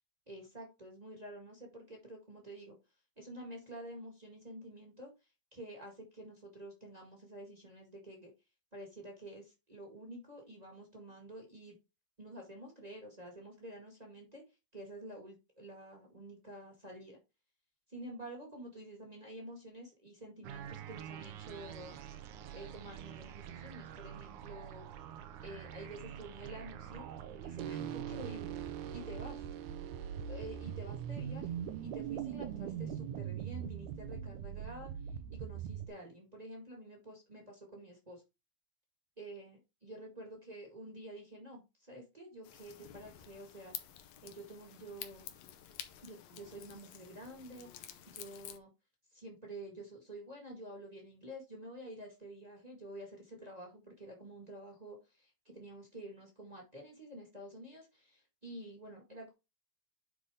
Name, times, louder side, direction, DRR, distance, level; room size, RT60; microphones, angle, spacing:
voice 1, 0.3-2.8 3.2-5.1 5.5-8.3 8.7-11.8 12.2-14.4 14.7-17.2 17.9-22.0 22.5-24.9 25.4-27.1 27.4-28.6 28.9-29.5 30.3-34.9 35.3-38.2 39.2-43.7 44.2-45.3 46.0-48.7 49.1-59.3, right 1 dB, 20° right, 0 dB, 1.2 m, -49 dB
sound 1, 20.4-35.9, right 9 dB, 85° right, 2.2 m, -43 dB
sound 2, 42.4-48.6, left 11 dB, 70° left, 2.0 m, -50 dB
9.7 x 4.1 x 3.5 m, 0.26 s
omnidirectional pair, 3.4 m